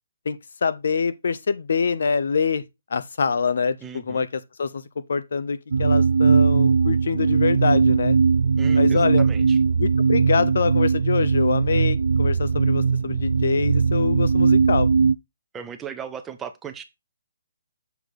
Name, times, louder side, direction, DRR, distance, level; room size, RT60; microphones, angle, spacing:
voice 1, 0.3-2.6 2.9-8.2 8.8-9.2 9.8-14.9, left 5 dB, 60° left, 0.8 m, -25 dB
voice 2, 3.8-4.3 8.6-9.6 15.5-16.8, right 8 dB, 10° right, 0.7 m, -37 dB
sound 1, 5.7-15.1, right 5 dB, 75° right, 0.4 m, -19 dB
7.1 x 4.0 x 4.8 m
hypercardioid pair, 165°, 0 cm